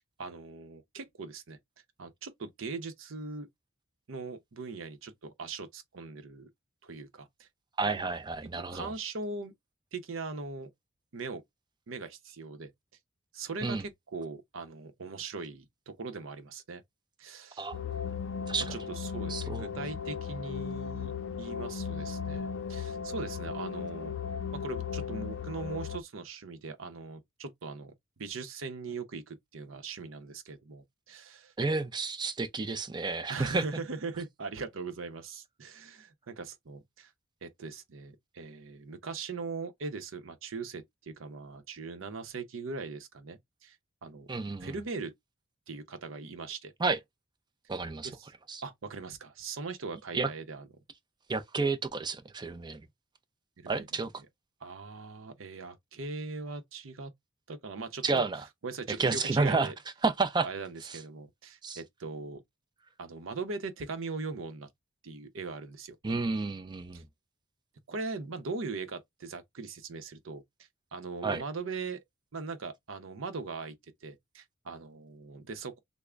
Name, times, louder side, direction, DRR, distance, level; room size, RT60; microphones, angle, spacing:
voice 1, 0.2-1.6 2.0-3.5 4.1-6.5 6.8-7.5 7.9-8.0 8.7-9.5 9.9-10.7 11.1-11.4 11.9-12.7 13.3-16.8 17.2-17.7 18.7-21.1 21.4-24.1 24.5-27.9 28.2-31.5 33.3-37.1 37.4-43.8 44.0-44.3 44.6-45.1 45.7-46.7 48.0-48.2 48.6-50.7 53.6-53.9 54.6-57.1 57.5-58.3 58.6-59.7 60.4-62.4 63.0-64.7 65.0-66.0 66.9-67.0 67.9-70.4 70.9-72.0 72.3-73.7 74.0-75.8, right 4 dB, 75° right, 0.7 m, -40 dB
voice 2, 7.8-8.9 13.6-13.8 17.6-17.8 18.5-18.8 19.3-19.7 31.6-33.6 44.3-44.8 46.8-47.0 47.7-48.1 48.5-48.6 50.1-50.3 51.3-52.9 53.7-54.1 58.0-58.4 59.0-59.7 60.0-60.5 60.8-61.0 61.6-61.8 66.0-67.1 71.2-71.4, right 3 dB, 20° right, 0.4 m, -30 dB
sound 1, 17.7-26.0, left 6 dB, 65° left, 0.5 m, -36 dB
3.6 x 2.0 x 3.2 m
head